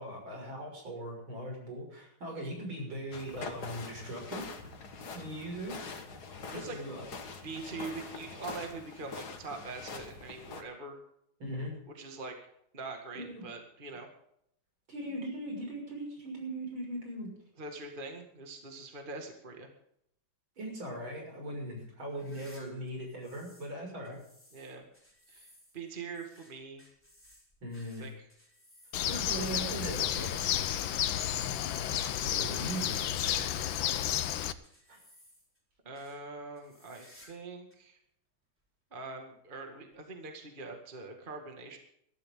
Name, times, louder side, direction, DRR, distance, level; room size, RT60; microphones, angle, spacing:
voice 1, 0.0-4.6 5.1-5.8 6.5-7.1 11.4-11.7 13.2-13.5 14.9-17.4 20.6-24.2 27.6-28.1 29.1-30.3 31.9-33.0 33.2-33.6 34.9-35.0, right 1 dB, 70° right, 1 dB, 7.1 m, -39 dB
sound 1, 3.1-10.6, left 4 dB, 50° left, 2.1 m, -44 dB
voice 2, 6.5-6.8 7.4-11.0 11.9-12.4 12.7-14.1 17.6-19.7 24.5-24.9 25.3-25.5 25.7-26.9 28.0-28.1 35.9-38.0 38.9-41.8, right 3 dB, 25° right, 3 dB, 2.1 m, -43 dB
sound 2, 22.1-23.7 24.0-33.4 33.7-35.6 35.9-36.2 36.6-37.5 37.7-37.8 38.6-38.7 39.9-40.0, left 1 dB, 5° left, 4.3 m, -60 dB
Bird, 28.9-34.5, left 11 dB, 70° left, 1.5 m, -32 dB
21.5 x 13.5 x 3.8 m, 0.71 s
omnidirectional pair, 2.3 m